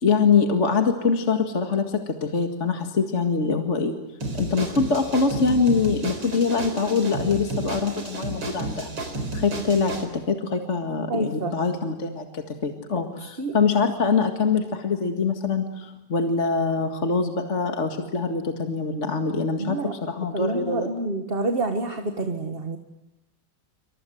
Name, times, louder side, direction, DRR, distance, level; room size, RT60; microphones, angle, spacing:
voice 1, 0.0-4.0 4.3-8.9 9.3-20.9, left 5 dB, 40° left, 4 dB, 2.1 m, -24 dB
sound 1, 4.2-10.1, right 2 dB, 85° right, 4.8 m, -32 dB
voice 2, 11.1-11.5 13.2-13.5 19.6-19.9 20.3-22.8, right 2 dB, 30° right, 5 dB, 1.9 m, -28 dB
28.0 x 25.5 x 7.9 m, 0.92 s
omnidirectional pair, 2.1 m